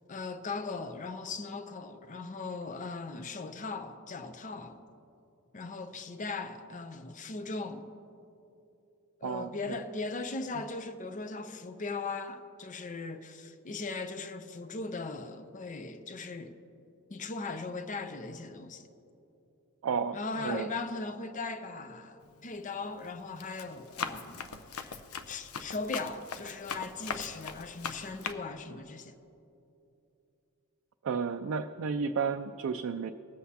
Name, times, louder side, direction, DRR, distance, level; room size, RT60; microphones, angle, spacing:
voice 1, 0.1-4.8 5.5-7.9 9.2-16.6 17.1-18.9 20.1-24.4 24.7-25.0 25.3-29.2, left 3 dB, 35° left, 0.5 m, -38 dB
voice 2, 9.2-9.8 19.8-20.7 31.0-33.1, right 5 dB, 65° right, 0.4 m, -32 dB
Run, 22.2-22.6 23.1-28.3, left 6 dB, 80° left, 0.6 m, -40 dB
20.5 x 7.9 x 2.8 m
head